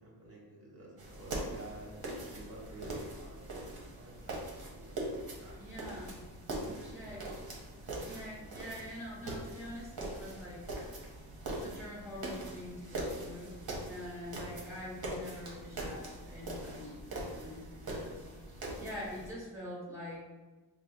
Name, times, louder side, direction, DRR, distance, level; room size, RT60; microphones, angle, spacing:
voice 1, 0.0-6.0 6.5-7.3, right 2 dB, 35° right, -5 dB, 1.4 m, -51 dB
sound 1, 1.0-19.3, right 1 dB, 60° right, 0.9 m, -42 dB
voice 2, 5.6-6.3 6.9-7.3 8.0-10.7 11.6-13.6 13.9-18.2 18.8-20.2, left 1 dB, 5° right, -8 dB, 1.4 m, -45 dB
4.7 x 2.1 x 2.7 m, 1.2 s
wide cardioid pair, 110°, 41 cm